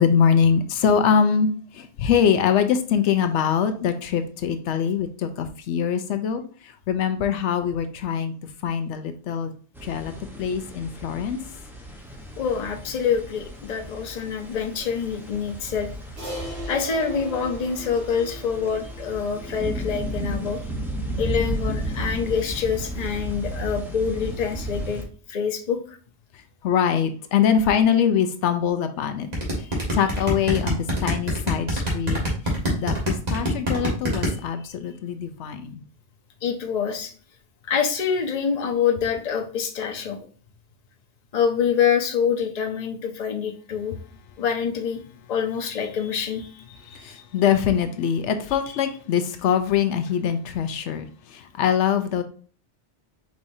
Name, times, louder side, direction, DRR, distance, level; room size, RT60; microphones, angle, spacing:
voice 1, 0.0-8.3 8.6-9.5 9.8-10.1 10.4-11.4 26.6-29.3 29.9-32.2 32.7-35.8 46.9-52.2, left 7 dB, 85° left, 0.9 m, -23 dB
sound 1, 9.7-25.0, right 1 dB, ahead, 0.7 m, -34 dB
voice 2, 12.4-15.9 16.7-20.6 21.2-25.8 36.4-37.1 37.7-40.2 41.3-44.0 44.4-45.0 45.3-46.5, left 7 dB, 40° left, 0.7 m, -26 dB
Crash cymbal, 16.2-20.7, equal, 65° right, 2.3 m, -39 dB
sound 2, 29.3-34.3, equal, 35° right, 1.8 m, -24 dB
4.8 x 4.2 x 2.6 m
omnidirectional pair, 1.2 m